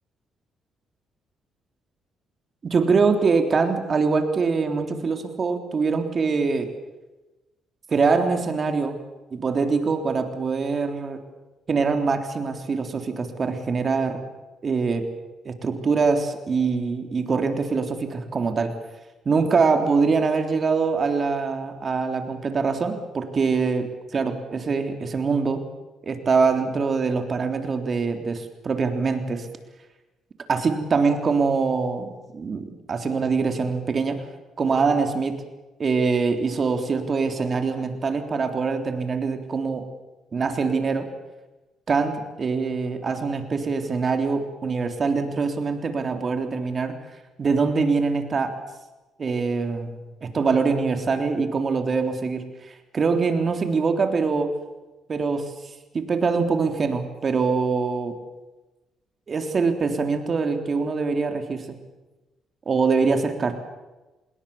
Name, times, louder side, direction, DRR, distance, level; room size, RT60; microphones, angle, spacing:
voice 1, 2.6-6.7 7.9-9.0 9.3-11.2 11.7-14.2 14.6-15.1 15.5-18.7 19.3-25.6 26.0-29.5 30.5-34.3 34.6-35.4 35.8-39.9 40.3-41.1 41.9-47.0 47.4-48.6 49.2-54.6 55.1-55.5 55.9-58.2 59.3-61.7 62.7-63.5, right 4 dB, 40° right, 6 dB, 3.5 m, -24 dB
27.0 x 21.0 x 7.2 m, 1.1 s
cardioid pair, 90°, 0 cm